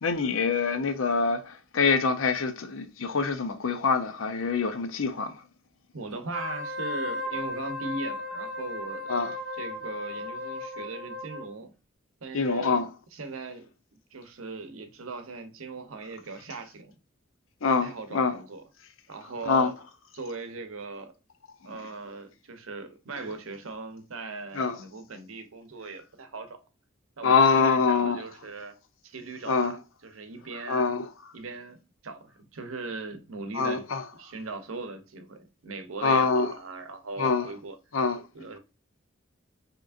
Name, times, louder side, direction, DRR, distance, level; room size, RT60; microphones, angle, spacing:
voice 1, 0.0-5.3 9.1-9.3 12.3-12.9 17.6-18.4 19.5-19.7 24.6-24.8 27.2-28.2 29.5-29.7 30.7-31.0 33.5-34.0 36.0-36.5 37.2-37.5 37.9-38.2, left 5 dB, 70° left, 0.6 m, -25 dB
voice 2, 5.9-9.2 9.5-11.7 12.2-12.8 13.1-13.7 14.1-16.9 17.7-18.6 19.1-19.7 20.1-21.1 21.6-26.6 27.2-28.7 29.0-29.8 30.0-30.9 31.3-33.9 34.2-37.8 38.3-38.6, right 3 dB, 80° right, 0.8 m, -39 dB
Wind instrument woodwind instrument, 6.2-11.5, left 2 dB, ahead, 1.4 m, -35 dB
4.8 x 3.0 x 2.4 m
head